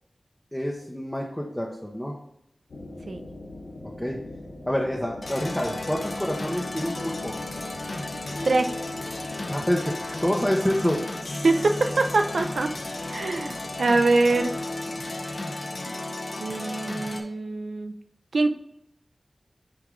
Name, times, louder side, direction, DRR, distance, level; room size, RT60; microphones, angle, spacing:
voice 1, 0.5-2.2 4.0-4.2 4.7-7.3 9.5-11.0, equal, 5° left, -2 dB, 1.0 m, -27 dB
sound 1, 2.7-15.3, left 1 dB, 85° left, 1.2 m, -44 dB
sound 2, 5.2-17.2, left 2 dB, 55° left, 0.9 m, -34 dB
voice 2, 8.4-8.8 11.4-12.7 13.1-14.5 16.4-17.9 18.3-18.5, right 3 dB, 90° right, 7 dB, 0.6 m, -23 dB
6.3 x 4.7 x 3.8 m, 0.75 s
wide cardioid pair, 75°, 0 cm